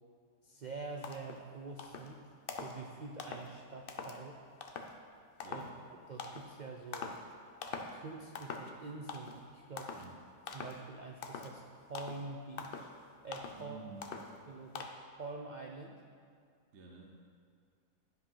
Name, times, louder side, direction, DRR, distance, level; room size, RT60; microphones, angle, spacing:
voice 1, 0.4-2.2 2.5-4.4 5.5-5.6 6.1-7.1 7.9-9.9 10.5-11.6 11.9-12.9 13.2-13.8 14.5-14.9 15.2-16.0, right 3 dB, 75° right, 2 dB, 0.4 m, -46 dB
sound 1, 0.6-0.7 1.0-1.4 1.8-2.1 2.5-2.8 3.2-3.5 3.9-4.2 4.6-4.9 5.4-5.7 6.2-6.5 6.9-7.3 7.6-8.0 8.3-8.8 9.1-9.4 9.8-10.1 10.5-10.8 11.2-11.5 11.9-12.3 12.6-12.9 13.3-13.6 14.0-14.4 14.7-14.9, left 5 dB, 55° left, 0.7 m, -43 dB
voice 2, 5.4-5.8 9.9-10.2 13.6-14.1 16.7-17.1, right 3 dB, 55° right, 0 dB, 1.0 m, -51 dB
11.0 x 5.1 x 5.6 m, 2.2 s
omnidirectional pair, 1.6 m